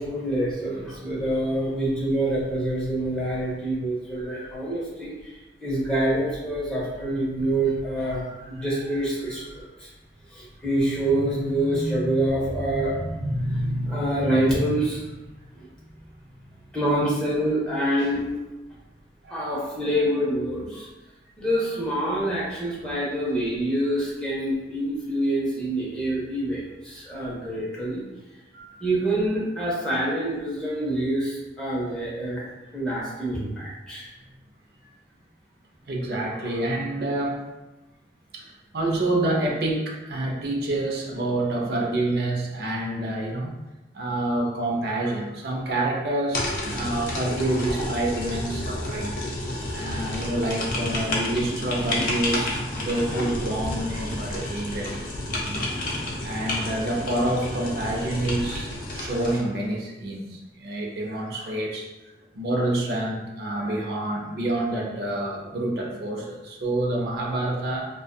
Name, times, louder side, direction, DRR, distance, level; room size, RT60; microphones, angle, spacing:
voice 1, 0.0-5.4 5.6-9.9 10.3-15.1 15.5-15.7 16.7-18.2 19.3-20.9 21.4-28.0 28.5-32.4 32.7-34.1, right 1 dB, 5° left, -7 dB, 0.6 m, -26 dB
voice 2, 4.2-4.5 19.2-19.5 35.9-37.4 38.3-43.5 43.9-49.2 49.7-55.1 55.4-55.7 56.2-61.9 62.3-67.9, right 1 dB, 60° right, -1 dB, 0.5 m, -28 dB
sound 1, 46.3-59.4, left 1 dB, 55° left, 0.5 m, -30 dB
2.6 x 2.3 x 2.2 m, 1.1 s
head